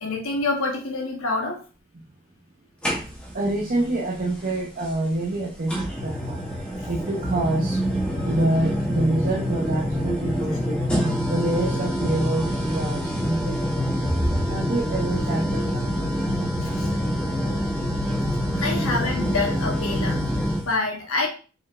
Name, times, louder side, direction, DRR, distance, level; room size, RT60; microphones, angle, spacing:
voice 1, 0.0-1.6 6.8-6.9 16.6-16.9 18.5-21.3, left 3 dB, 80° left, 1 dB, 1.2 m, -27 dB
sound 1, 2.8-3.5 4.8-4.9 5.7-20.7, equal, 5° left, 0.9 m, -26 dB
voice 2, 3.3-10.8 11.3-13.8 14.5-16.5, right 2 dB, 40° right, -2 dB, 0.6 m, -27 dB
4.5 x 3.9 x 2.5 m, 0.36 s
head